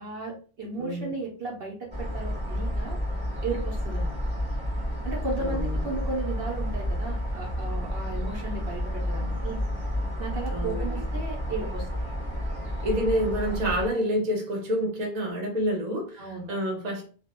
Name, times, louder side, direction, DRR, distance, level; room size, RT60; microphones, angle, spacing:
voice 1, 0.0-3.0 3.4-4.1 5.0-9.6 10.2-12.0 16.2-16.5, right 3 dB, 70° right, -2 dB, 0.9 m, -35 dB
voice 2, 0.8-1.1 5.4-6.0 10.5-11.0 12.8-17.0, equal, 45° right, 0 dB, 0.8 m, -28 dB
sound 1, 1.9-13.9, equal, 5° right, 1.0 m, -30 dB
2.3 x 2.1 x 2.8 m, 0.39 s
omnidirectional pair, 1.1 m